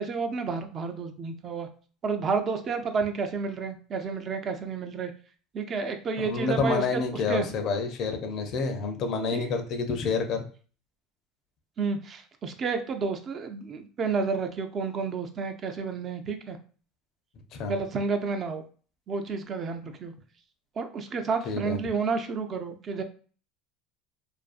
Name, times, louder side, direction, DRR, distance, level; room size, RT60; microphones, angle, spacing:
voice 1, 0.0-1.7 2.0-5.1 5.5-7.0 7.3-7.5 9.3-9.5 11.8-16.6 17.7-18.6 19.1-20.1 20.8-23.0, right 5 dB, 40° right, 7 dB, 0.4 m, -30 dB
voice 2, 6.2-10.4 17.5-17.7 21.5-21.8, left 4 dB, 50° left, 6 dB, 0.5 m, -28 dB
2.5 x 2.3 x 2.4 m, 0.40 s
supercardioid pair, 115°, 0 cm